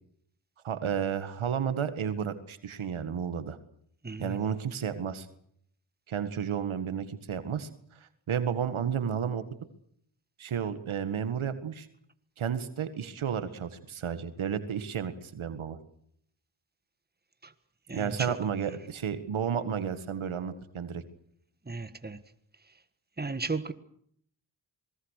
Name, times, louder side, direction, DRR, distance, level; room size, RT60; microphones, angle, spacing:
voice 1, 0.6-3.6 4.2-5.3 6.1-7.7 8.3-9.4 10.4-11.9 12.4-15.8 17.9-21.0, right 8 dB, 85° right, 1.9 m, -32 dB
voice 2, 4.0-4.4 17.4-17.5 17.9-18.4 21.7-22.2 23.2-23.7, right 3 dB, 20° right, 1.7 m, -34 dB
26.0 x 21.0 x 6.6 m
cardioid pair, 50°, 47 cm